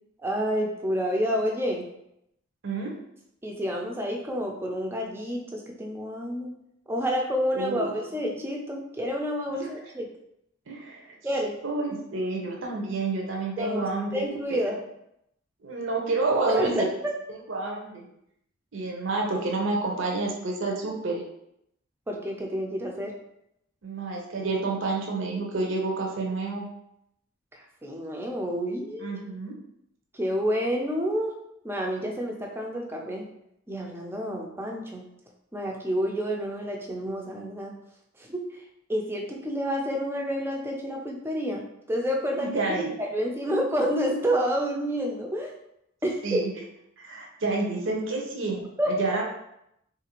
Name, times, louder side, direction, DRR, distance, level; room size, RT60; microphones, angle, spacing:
voice 1, 0.2-1.9 3.4-6.5 6.9-10.1 11.2-11.5 13.6-13.8 14.1-14.8 16.5-16.9 22.1-23.1 27.8-29.2 30.1-31.3 31.6-33.3 33.7-35.1 35.5-37.8 38.3-38.4 38.9-41.6 41.9-42.5 43.0-45.5 46.0-46.5 48.8-48.9, equal, 10° right, 0 dB, 0.4 m, -29 dB
voice 2, 7.5-8.0 9.5-9.7 10.7-11.0 11.6-14.2 14.5-14.6 15.6-16.9 17.5-18.1 18.7-21.2 23.8-26.7 29.0-29.5 42.4-42.9 46.2-46.5 47.0-49.2, right 3 dB, 65° right, -1 dB, 0.6 m, -29 dB
3.6 x 2.4 x 2.9 m, 0.79 s
head